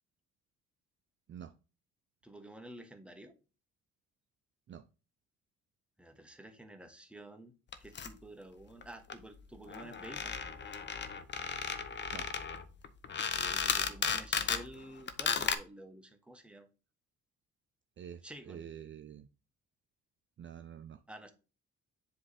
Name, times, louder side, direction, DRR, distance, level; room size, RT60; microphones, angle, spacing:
voice 1, 2.2-3.3 6.0-7.5 7.8-10.3 13.3-16.7 18.2-18.6 21.1-21.3, right 1 dB, 5° right, 1.1 m, -50 dB
sound 1, 7.7-8.1 8.8-8.9 9.1-9.2 9.4-9.5 9.7-14.7 15.1-15.5, left 6 dB, 35° left, 0.7 m, -34 dB
voice 2, 18.0-19.3 20.4-21.0, right 9 dB, 40° right, 0.5 m, -47 dB
7.6 x 3.3 x 4.2 m
cardioid pair, 90°, 30 cm